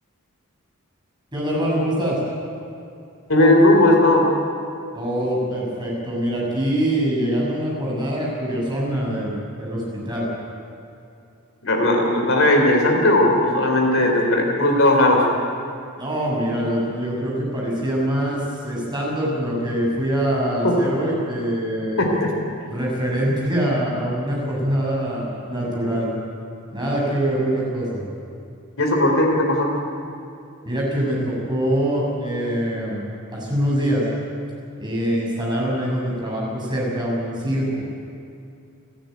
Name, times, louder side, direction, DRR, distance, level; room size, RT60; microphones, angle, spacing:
voice 1, 1.3-2.2 4.9-10.3 16.0-22.0 22.7-26.1 26.7-28.0 30.6-33.0 33.3-34.1 34.8-37.8, right 1 dB, 20° right, -4 dB, 6.9 m, -24 dB
voice 2, 3.3-4.2 11.6-15.2 20.6-20.8 22.0-22.3 28.8-29.7, left 1 dB, 60° left, 1 dB, 3.8 m, -17 dB
29.5 x 10.5 x 9.3 m, 2.6 s
head